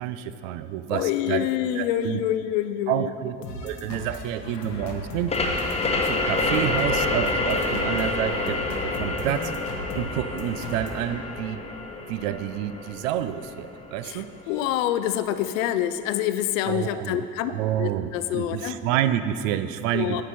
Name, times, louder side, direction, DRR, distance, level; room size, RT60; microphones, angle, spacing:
voice 1, 0.0-1.5 1.8-2.2 2.9-3.4 3.6-5.3 6.0-9.5 9.9-11.6 12.1-14.3 16.7-20.2, right 11 dB, 55° right, 12 dB, 0.5 m, -29 dB
voice 2, 0.9-3.1 14.0-17.5 17.8-18.8 19.9-20.2, left 11 dB, 55° left, 11 dB, 0.5 m, -26 dB
sound 1, 3.4-11.6, left 2 dB, 75° left, 1.0 m, -37 dB
sound 2, 5.3-14.6, left 2 dB, 15° left, 0.8 m, -28 dB
8.9 x 8.4 x 4.2 m, 2.4 s
figure-of-eight pair, 60°, 48 cm